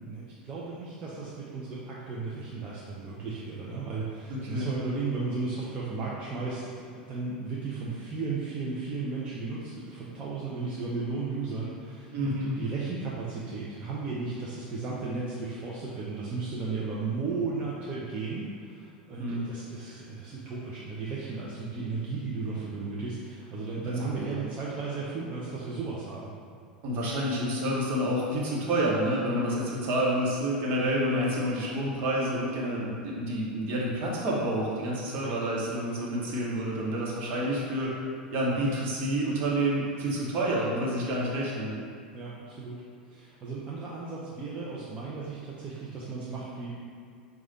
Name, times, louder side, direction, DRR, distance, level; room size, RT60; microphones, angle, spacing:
voice 1, 0.0-6.7 6.9-26.3 31.1-31.3 35.2-35.4 42.1-42.8 43.0-46.7, right 4 dB, 25° right, -7 dB, 0.6 m, -35 dB
voice 2, 4.3-4.7 12.1-12.5 19.2-19.4 24.1-24.4 26.8-37.9 38.3-41.7, right 1 dB, 40° right, -5 dB, 1.1 m, -29 dB
4.8 x 2.4 x 4.0 m, 2.3 s
figure-of-eight pair, 85°, 5 cm